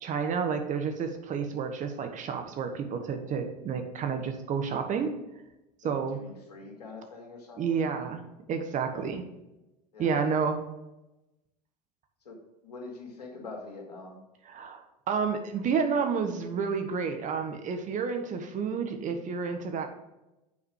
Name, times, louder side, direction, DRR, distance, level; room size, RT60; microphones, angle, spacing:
voice 1, 0.0-5.1 5.8-6.2 7.6-8.2 8.5-9.2 10.0-10.6 14.5-19.9, right 6 dB, 40° right, 6 dB, 1.3 m, -30 dB
voice 2, 5.8-7.9 8.7-9.1 9.9-10.2 12.2-12.4 12.6-14.2, left 3 dB, 80° left, 1 dB, 2.2 m, -44 dB
8.5 x 4.8 x 4.8 m, 0.97 s
hypercardioid pair, 80°, 20 cm